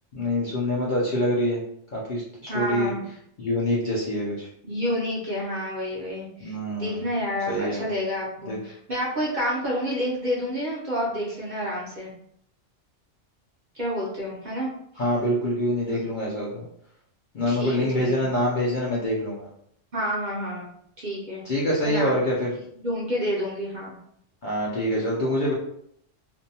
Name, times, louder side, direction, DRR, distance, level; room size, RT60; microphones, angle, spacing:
voice 1, 0.1-1.6 1.9-2.9 3.4-4.5 6.4-7.0 7.5-7.8 8.5-8.6 15.0-16.6 17.3-19.5 21.4-22.5 24.4-25.5, left 1 dB, 55° left, -5 dB, 0.6 m, -25 dB
voice 2, 2.5-3.0 4.6-12.1 13.7-14.7 15.8-16.1 17.5-18.2 19.9-20.7 21.0-21.4 21.8-22.2 22.8-24.0, equal, 45° right, -5 dB, 0.7 m, -29 dB
2.6 x 2.2 x 2.7 m, 0.68 s
omnidirectional pair, 1.3 m